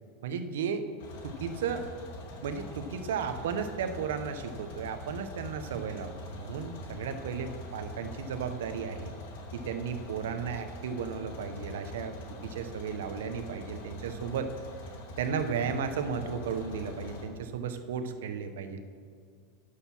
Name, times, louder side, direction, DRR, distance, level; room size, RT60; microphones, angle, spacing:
voice 1, 0.2-0.9 1.2-1.9 2.4-9.1 9.5-14.5 15.2-18.8, right 6 dB, 90° right, 8 dB, 0.9 m, -34 dB
sound 1, 1.0-17.2, left 1 dB, 60° left, 2.1 m, -44 dB
11.0 x 6.6 x 6.0 m, 2.2 s
supercardioid pair, 165°, 0 cm